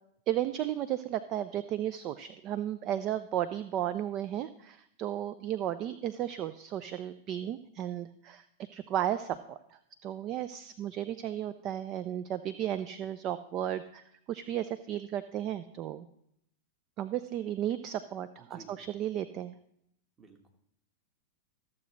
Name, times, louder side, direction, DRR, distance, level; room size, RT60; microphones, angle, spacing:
voice 1, 0.3-16.1 17.0-19.5, right 11 dB, 40° right, 13 dB, 0.4 m, -34 dB
voice 2, 18.4-18.8 20.2-20.5, right 3 dB, 20° right, 3 dB, 1.6 m, -54 dB
14.0 x 7.3 x 3.1 m, 0.75 s
figure-of-eight pair, 95°, 0 cm